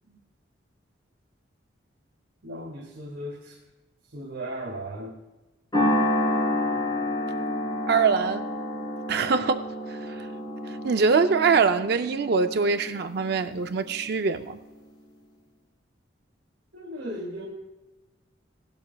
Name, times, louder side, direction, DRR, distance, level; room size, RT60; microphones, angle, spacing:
voice 1, 2.4-3.6 4.0-5.2 16.7-17.5, equal, 75° right, 2.0 m, -36 dB
sound 1, 5.7-14.2, left 1 dB, 20° left, 4.3 m, -29 dB
voice 2, 7.9-8.4 9.1-10.3 10.7-14.6, right 5 dB, 55° right, 0.4 m, -24 dB
17.0 x 12.0 x 2.3 m
head